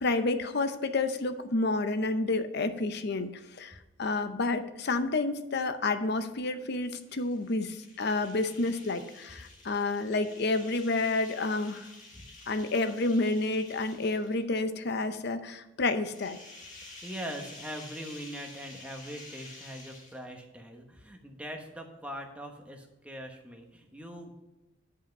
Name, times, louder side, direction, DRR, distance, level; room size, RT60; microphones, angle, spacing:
voice 1, 0.0-11.9 12.5-16.4, left 2 dB, 55° left, 10 dB, 0.7 m, -30 dB
sound 1, 6.8-14.6 16.0-20.4, left 2 dB, 40° left, 1.8 m, -50 dB
voice 2, 17.0-24.3, equal, 5° right, 3 dB, 1.1 m, -42 dB
10.0 x 5.7 x 5.2 m, 1.0 s
head